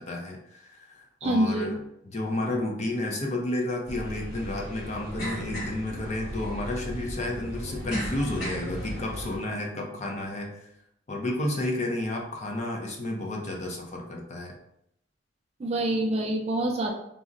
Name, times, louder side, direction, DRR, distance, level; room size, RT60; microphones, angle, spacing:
voice 1, 0.0-1.8 2.1-10.5 11.1-14.5, left 1 dB, 35° left, 1 dB, 0.5 m, -31 dB
voice 2, 1.2-1.7 15.6-16.9, right 1 dB, 30° right, 2 dB, 0.3 m, -26 dB
sound 1, 3.9-9.4, equal, 55° left, 1.2 m, -36 dB
3.7 x 2.1 x 2.5 m, 0.76 s
head